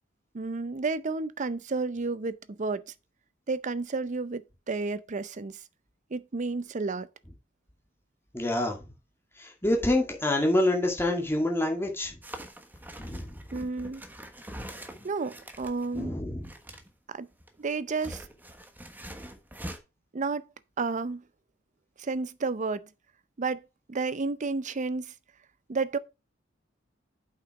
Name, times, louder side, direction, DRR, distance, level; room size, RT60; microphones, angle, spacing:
voice 1, 0.3-2.8 3.5-5.6 6.1-7.1 13.5-14.0 15.0-16.1 17.1-17.3 17.6-18.2 20.1-20.5 20.8-21.2 22.0-22.9 23.4-23.6 23.9-25.1 25.7-26.0, right 4 dB, 40° right, 0.6 m, -31 dB
voice 2, 8.3-8.8 9.4-12.2 13.0-13.4 15.9-16.5, left 1 dB, 10° left, 2.2 m, -27 dB
sound 1, 12.2-16.0 16.4-16.9 17.3-19.8, right 1 dB, 10° right, 1.2 m, -43 dB
8.1 x 6.0 x 4.8 m
head